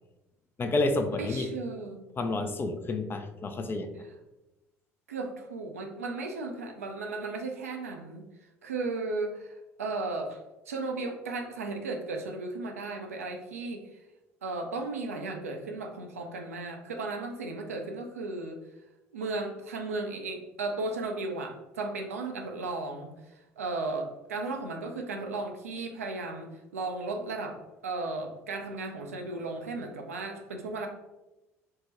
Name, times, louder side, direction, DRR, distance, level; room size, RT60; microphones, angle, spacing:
voice 1, 0.6-1.5 2.2-3.9, left 2 dB, 30° left, 7 dB, 0.4 m, -29 dB
voice 2, 1.2-2.2 5.1-14.0 14.4-18.6 19.1-30.9, right 3 dB, 85° right, 3 dB, 0.4 m, -35 dB
3.4 x 2.1 x 3.1 m, 1.0 s
figure-of-eight pair, 60°, 8 cm